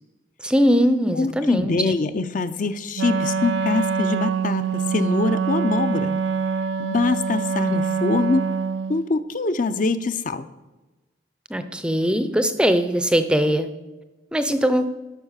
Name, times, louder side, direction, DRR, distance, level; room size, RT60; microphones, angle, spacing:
voice 1, 0.4-1.9 11.5-13.7 14.3-14.9, equal, 5° right, 10 dB, 0.5 m, -20 dB
voice 2, 1.2-6.2 6.8-8.4 8.9-10.5, left 3 dB, 45° left, 12 dB, 0.5 m, -24 dB
Wind instrument woodwind instrument, 2.9-9.1, right 6 dB, 70° right, 0.3 m, -25 dB
12.0 x 5.5 x 6.5 m, 1.1 s
head